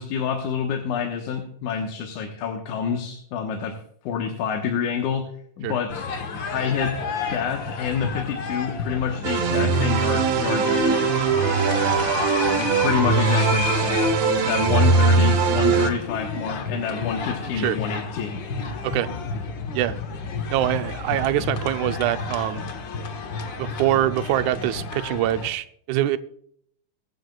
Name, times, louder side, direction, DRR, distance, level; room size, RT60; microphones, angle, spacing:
voice 1, 0.0-3.8 4.0-5.3 5.6-6.1 6.5-7.0 7.3-11.2 12.6-14.0 14.5-18.4, left 7 dB, 75° left, 3 dB, 2.6 m, -27 dB
sound 1, 5.9-25.5, left 4 dB, 55° left, 1.3 m, -31 dB
sound 2, 9.2-15.9, right 4 dB, 60° right, 2.1 m, -20 dB
voice 2, 20.5-22.6 23.6-26.2, right 13 dB, 80° right, 10 dB, 2.0 m, -24 dB
22.5 x 9.5 x 2.3 m, 0.65 s
omnidirectional pair, 3.6 m